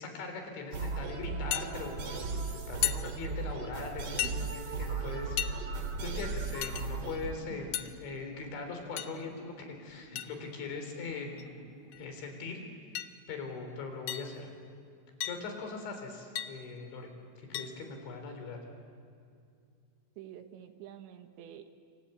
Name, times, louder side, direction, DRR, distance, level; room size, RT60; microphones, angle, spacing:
voice 1, 0.0-11.6 12.0-12.6 13.3-14.5 15.2-17.1 17.4-18.6, left 4 dB, 70° left, 4 dB, 6.0 m, -41 dB
sound 1, 0.7-7.3, right 4 dB, 45° right, 2.2 m, -36 dB
sound 2, 1.5-1.7 2.8-3.0 4.2-4.4 5.4-5.5 6.6-6.9 7.7-7.9 9.0-9.2 10.2-10.3 11.4-11.5 11.9-12.0 13.0-13.1 14.1-14.3 15.2-15.5 16.4-16.5 17.5-17.7, left 13 dB, 85° left, 2.1 m, -33 dB
voice 2, 4.2-4.5 7.5-7.7 20.2-21.7, right 11 dB, 75° right, 7 dB, 3.4 m, -48 dB
sound 3, 5.8-12.2, left 1 dB, 10° left, 3.8 m, -56 dB
28.0 x 26.0 x 8.1 m, 2.4 s
omnidirectional pair, 5.5 m